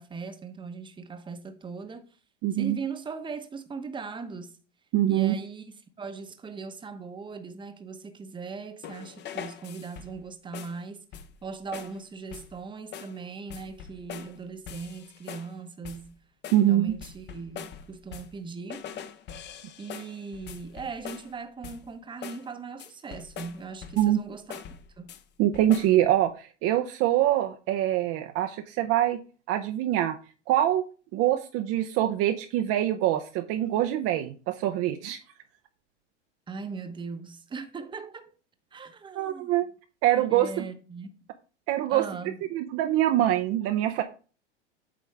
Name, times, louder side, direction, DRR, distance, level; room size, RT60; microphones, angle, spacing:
voice 1, 0.0-2.1 2.5-4.6 5.1-11.0 11.4-16.1 16.6-18.8 19.8-24.6 25.0-25.2 36.5-38.3 38.7-39.6 40.1-41.1 41.9-42.4, right 5 dB, 15° right, 0.9 m, -39 dB
voice 2, 2.4-2.8 4.9-5.3 16.5-16.9 24.0-24.2 25.4-29.2 29.5-30.2 30.5-30.8 31.1-35.2 39.2-39.7 40.0-40.6 41.7-42.1 42.5-44.0, right 12 dB, 40° right, 0.7 m, -24 dB
sound 1, 8.8-10.2 10.5-10.8 11.1-11.5 11.7-12.0 12.3-12.6 12.9-13.2 13.5-14.4 14.7-15.6 15.8-16.1 16.4-18.4 18.7-21.4 21.6-21.9 22.2-22.5 22.8-24.2 24.5-25.2 25.5-26.0, left 8 dB, 30° left, 0.8 m, -42 dB
8.6 x 5.0 x 3.4 m
hypercardioid pair, 110°, 36 cm